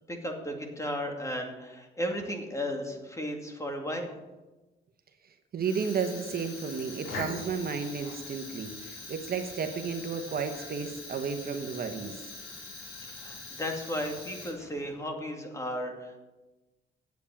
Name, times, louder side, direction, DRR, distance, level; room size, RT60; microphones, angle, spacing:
voice 1, 0.1-4.1 13.2-16.2, equal, 15° left, 2 dB, 2.4 m, -35 dB
voice 2, 5.5-12.1, right 6 dB, 50° right, 6 dB, 1.1 m, -33 dB
Fire, 5.6-14.9, left 3 dB, 90° left, 4.6 m, -43 dB
8.6 x 8.3 x 8.4 m, 1.1 s
cardioid pair, 90°, 20 cm